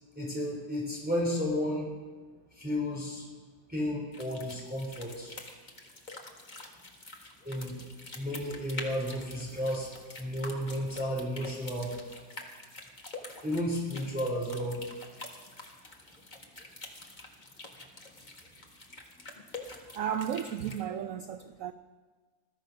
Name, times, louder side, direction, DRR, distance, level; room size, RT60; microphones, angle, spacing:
voice 1, 0.2-1.9 2.6-3.2 3.7-5.3 7.4-7.8 8.1-9.9 10.2-11.9 13.4-14.8, equal, 5° right, 3.6 m, -32 dB
sound 1, 4.1-20.8, left 2 dB, 25° left, 1.6 m, -47 dB
voice 2, 19.7-21.7, right 9 dB, 65° right, 0.8 m, -34 dB
20.5 x 13.0 x 5.3 m
omnidirectional pair, 1.9 m